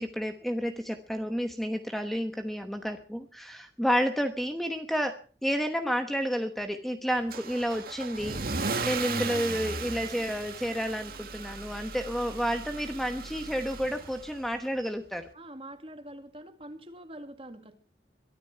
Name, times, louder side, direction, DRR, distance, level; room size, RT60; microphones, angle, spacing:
voice 1, 0.0-15.3, equal, ahead, 6 dB, 1.1 m, -31 dB
Car / Engine starting / Accelerating revving vroom, 7.3-14.4, right 4 dB, 55° right, 1.6 m, -36 dB
voice 2, 15.3-17.8, right 1 dB, 30° right, 7 dB, 2.2 m, -45 dB
23.0 x 13.5 x 4.5 m, 0.41 s
head